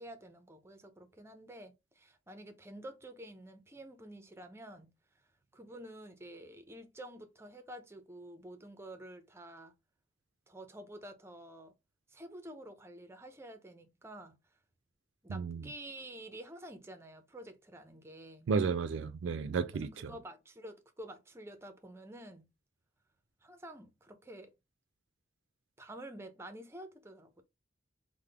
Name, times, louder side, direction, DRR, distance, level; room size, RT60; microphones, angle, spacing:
voice 1, 0.0-4.9 5.5-9.8 10.5-11.7 12.1-14.4 15.2-18.5 19.7-22.5 23.4-24.5 25.8-27.4, right 1 dB, 15° right, 0.5 m, -49 dB
voice 2, 15.3-15.6 18.5-20.1, right 5 dB, 90° right, 0.3 m, -33 dB
3.4 x 2.1 x 3.3 m
head